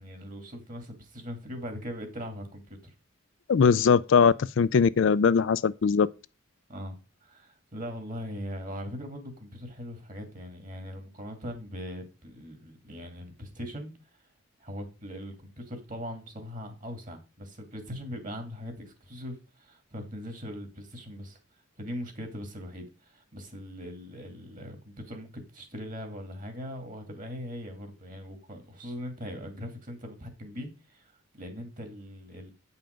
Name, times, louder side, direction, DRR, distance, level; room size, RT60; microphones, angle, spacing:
voice 1, 0.0-2.9 6.7-13.9 14.6-21.4 21.8-32.5, equal, 40° right, 2.3 m, -40 dB
voice 2, 3.5-6.1, left 6 dB, 65° left, 0.4 m, -21 dB
8.9 x 5.6 x 5.1 m
head